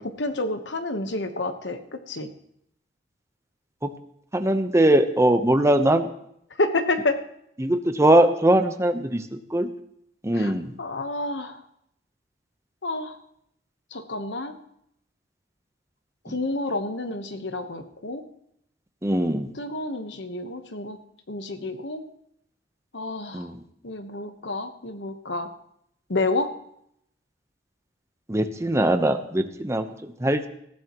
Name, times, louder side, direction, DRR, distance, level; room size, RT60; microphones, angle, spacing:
voice 1, 0.0-2.3 6.6-7.2 10.3-10.5 10.8-11.6 12.8-13.2 13.9-14.6 16.2-18.2 19.5-21.0 21.3-22.0 22.9-23.5 23.8-25.5 26.1-26.5, left 2 dB, 75° left, 8 dB, 1.2 m, -29 dB
voice 2, 4.3-6.1 7.6-9.2 9.5-9.7 10.2-10.7 19.0-19.5 23.3-23.6 28.3-29.9 30.2-30.5, right 1 dB, 15° right, 7 dB, 0.9 m, -21 dB
18.5 x 14.5 x 3.1 m, 0.74 s
head